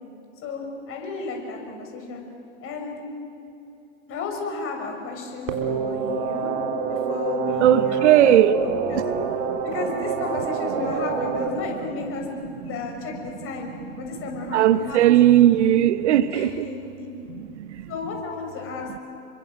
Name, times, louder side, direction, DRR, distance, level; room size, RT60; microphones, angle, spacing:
voice 1, 0.4-2.2 2.6-3.0 4.1-6.5 6.9-9.1 9.6-13.7 14.0-15.4 16.3-17.1 17.9-19.0, left 4 dB, 35° left, 2 dB, 6.6 m, -33 dB
sound 1, 5.5-11.5, right 5 dB, 45° right, 3.7 m, -27 dB
voice 2, 7.6-8.6 8.9-9.0 9.5-9.6 12.6-12.7 13.8-13.9 14.5-16.7 17.3-17.9, right 12 dB, 60° right, 13 dB, 1.1 m, -18 dB
29.0 x 24.0 x 7.9 m, 2.7 s
hypercardioid pair, 105°, 39 cm